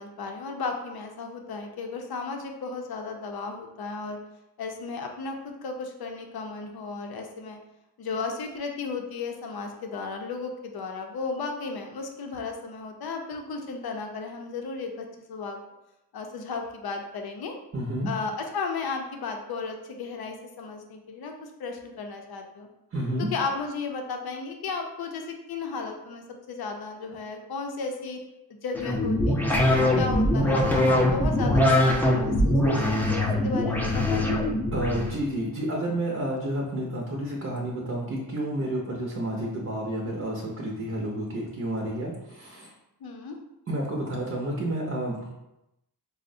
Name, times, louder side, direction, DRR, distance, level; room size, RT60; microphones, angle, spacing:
voice 1, 0.0-4.2 4.6-7.6 8.0-15.6 16.1-17.5 18.1-21.3 21.6-22.7 23.2-28.2 28.5-34.4 43.0-43.4, left 4 dB, 70° left, 3 dB, 0.6 m, -34 dB
voice 2, 17.7-18.1 22.9-23.3 34.7-42.7 43.7-45.3, right 1 dB, 40° right, -2 dB, 0.6 m, -30 dB
sound 1, 28.7-35.1, left 1 dB, 5° left, 0.5 m, -22 dB
4.1 x 2.1 x 2.6 m, 0.90 s
wide cardioid pair, 90°, 39 cm